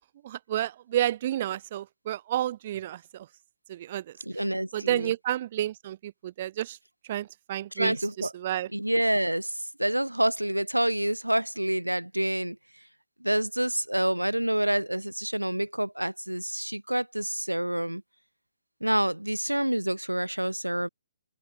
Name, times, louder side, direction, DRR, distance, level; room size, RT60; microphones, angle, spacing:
voice 1, 0.2-3.3 3.7-4.1 4.7-6.8 7.1-8.7, right 12 dB, 40° right, 0.7 m, -31 dB
voice 2, 4.2-5.1 7.7-8.3 8.7-12.6 13.2-18.0 18.8-20.9, right 1 dB, 90° right, 0.8 m, -27 dB
open air
figure-of-eight pair, 130°, 0 cm